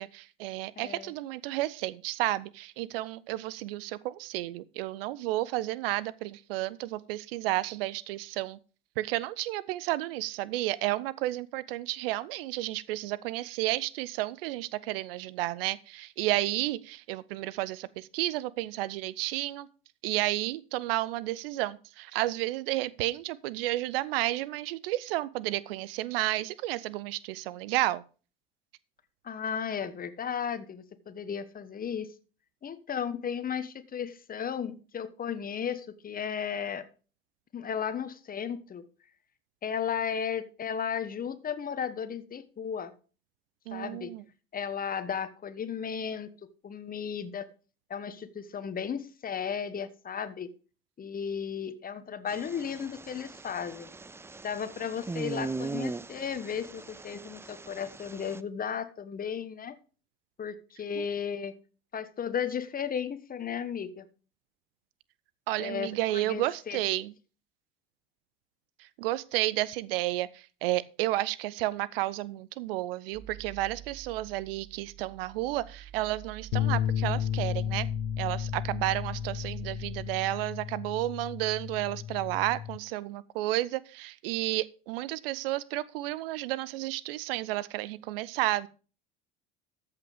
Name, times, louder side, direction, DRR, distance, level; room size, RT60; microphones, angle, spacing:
voice 1, 0.0-8.6 9.0-19.7 20.0-28.0 43.7-44.2 61.0-61.1 65.5-67.1 68.8-77.9 78.2-88.7, right 16 dB, 70° right, 0.6 m, -32 dB
voice 2, 0.8-1.1 29.2-32.1 32.6-36.8 37.5-38.9 39.6-42.9 43.7-44.1 44.5-46.3 46.6-47.5 47.9-50.5 51.0-53.9 54.4-59.8 60.4-61.5 61.9-64.1 65.6-66.8, left 7 dB, 30° left, 1.2 m, -35 dB
sound 1, 52.3-58.4, right 3 dB, 10° right, 0.4 m, -40 dB
sound 2, 73.1-80.0, right 12 dB, 40° right, 5.2 m, -46 dB
sound 3, 76.5-82.8, left 10 dB, 60° left, 0.9 m, -33 dB
13.5 x 5.8 x 5.0 m
hypercardioid pair, 65°, 30 cm